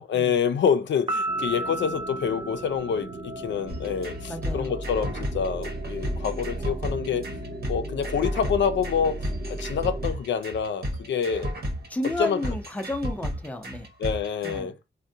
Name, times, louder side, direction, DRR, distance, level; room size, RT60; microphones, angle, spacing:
voice 1, 0.0-7.3 7.7-9.2 9.5-11.5 12.2-12.4 14.0-14.7, left 7 dB, 80° left, 0.4 m, -27 dB
Piano, 1.1-3.6, right 2 dB, 30° right, 0.8 m, -33 dB
sound 1, 1.3-10.1, right 3 dB, 85° right, 0.6 m, -39 dB
sound 2, 3.7-14.6, equal, 55° right, 1.1 m, -33 dB
voice 2, 4.2-4.8 11.9-13.9 14.4-14.7, left 1 dB, 10° left, 0.6 m, -32 dB
3.5 x 2.2 x 2.6 m
cardioid pair, 85°, 18 cm